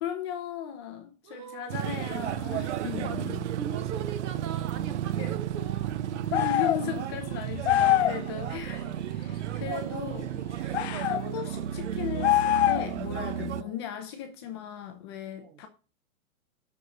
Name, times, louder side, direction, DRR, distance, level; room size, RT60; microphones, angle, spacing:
voice 1, 0.0-3.4 5.2-5.4 6.3-8.9 9.1-15.7, left 9 dB, 20° left, 0.7 m, -37 dB
voice 2, 1.2-1.8 2.9-6.1 7.9-8.0 8.3-9.0 9.7-10.5 10.9-11.2 13.6-13.8 15.4-15.6, right 7 dB, 20° right, 0.8 m, -42 dB
sound 1, 1.7-13.6, right 11 dB, 55° right, 0.7 m, -33 dB
sound 2, 6.3-6.8 7.6-8.2 10.7-11.2 12.2-13.0, left 13 dB, 50° left, 0.4 m, -23 dB
7.0 x 6.7 x 6.8 m
hypercardioid pair, 170°, 42 cm